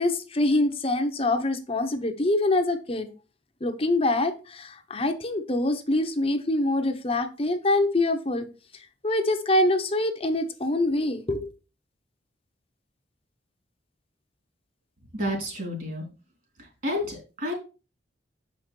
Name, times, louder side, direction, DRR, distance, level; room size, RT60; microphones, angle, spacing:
voice 1, 0.0-3.1 3.6-8.5 9.0-11.5, left 2 dB, 30° left, 6 dB, 0.8 m, -25 dB
voice 2, 15.1-16.1 16.6-17.5, left 1 dB, 50° right, 0 dB, 3.1 m, -30 dB
6.8 x 5.3 x 4.4 m, 0.32 s
head